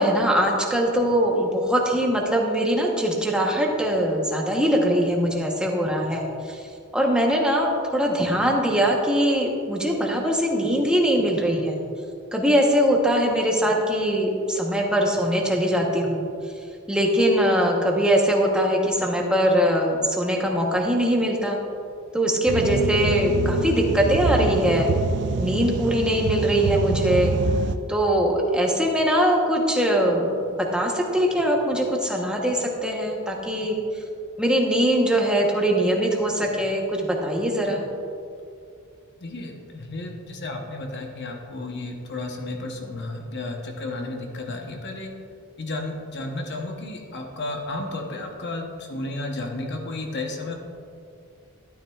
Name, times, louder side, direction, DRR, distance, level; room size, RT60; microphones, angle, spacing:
voice 1, 0.0-6.7 6.9-11.8 12.3-16.3 16.9-21.6 22.1-24.9 25.4-27.3 27.9-30.3 30.7-33.8 34.4-37.8, equal, 5° right, 0 dB, 0.9 m, -22 dB
sound 1, 22.5-27.8, right 4 dB, 50° right, 0.4 m, -26 dB
voice 2, 22.6-23.0 39.2-45.1 45.6-50.5, left 2 dB, 50° left, 2 dB, 0.9 m, -33 dB
12.0 x 9.4 x 2.4 m, 2.4 s
head